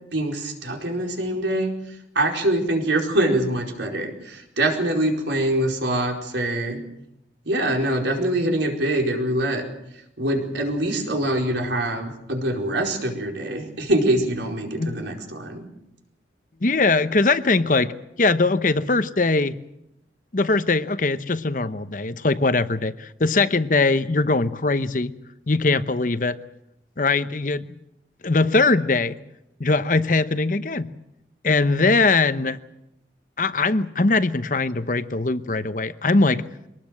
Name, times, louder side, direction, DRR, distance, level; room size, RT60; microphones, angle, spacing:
voice 1, 0.1-6.8 7.5-9.6 10.2-15.7, right 1 dB, 80° right, 2 dB, 4.6 m, -24 dB
voice 2, 16.6-19.5 20.3-25.1 25.5-26.4 27.0-27.7 28.2-29.2 29.6-30.9 31.4-32.6 33.4-36.4, left 3 dB, 45° left, 12 dB, 0.9 m, -21 dB
24.0 x 19.5 x 7.7 m, 0.83 s
head